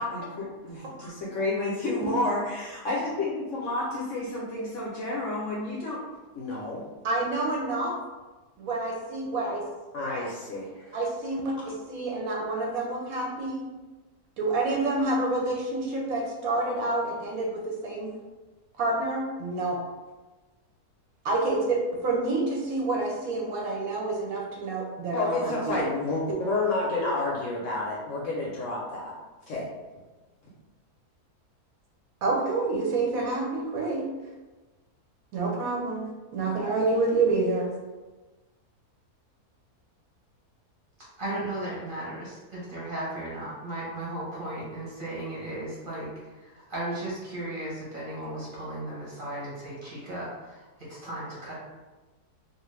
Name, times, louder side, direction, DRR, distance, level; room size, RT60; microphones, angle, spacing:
voice 1, 0.1-6.0 6.4-6.8 9.9-11.0 25.1-29.1 29.5-29.7, left 2 dB, 65° left, -4 dB, 0.8 m, -30 dB
voice 2, 7.0-7.9 8.6-9.6 10.9-13.6 14.4-18.1 18.8-19.8 21.2-25.8 32.2-34.0 35.3-36.1 36.3-37.7, right 2 dB, 70° right, -1 dB, 0.9 m, -28 dB
voice 3, 41.2-46.1 46.4-51.6, right 1 dB, 45° right, -7 dB, 0.8 m, -36 dB
2.4 x 2.4 x 3.1 m, 1.2 s
omnidirectional pair, 1.6 m